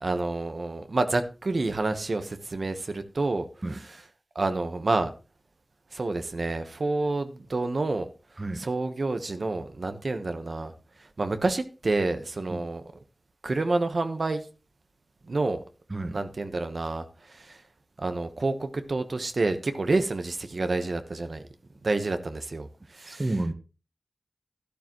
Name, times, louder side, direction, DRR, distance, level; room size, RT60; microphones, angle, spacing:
voice 1, 0.0-3.5 3.7-3.8 4.3-5.1 5.9-8.1 8.6-10.7 11.0-12.8 13.4-14.4 15.3-15.6 16.1-17.6 18.0-21.4 21.8-23.2, right 2 dB, 60° right, 1.1 m, -28 dB
voice 2, 23.1-23.5, right 2 dB, 40° right, 1.0 m, -30 dB
12.0 x 12.0 x 3.1 m
wide cardioid pair, 70°, 0 cm